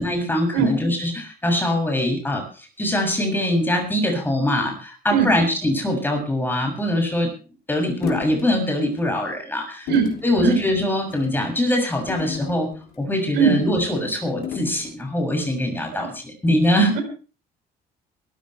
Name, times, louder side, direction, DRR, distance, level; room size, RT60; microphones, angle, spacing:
voice 1, 0.0-7.3 7.7-9.9 10.2-12.7 13.0-17.0, left 1 dB, 10° left, 3 dB, 7.3 m, -23 dB
voice 2, 0.5-0.7 5.1-5.3 9.9-10.1 10.4-10.6 13.4-13.6 15.9-16.1, right 7 dB, 85° right, 7 dB, 4.3 m, -19 dB
sound 1, 8.0-8.5 8.9-9.1 9.9-10.2 11.0-11.3 12.1-13.0 14.4-14.9, left 8 dB, 65° left, 3.4 m, -32 dB
22.5 x 14.5 x 3.4 m, 0.36 s
cardioid pair, 110°, 17 cm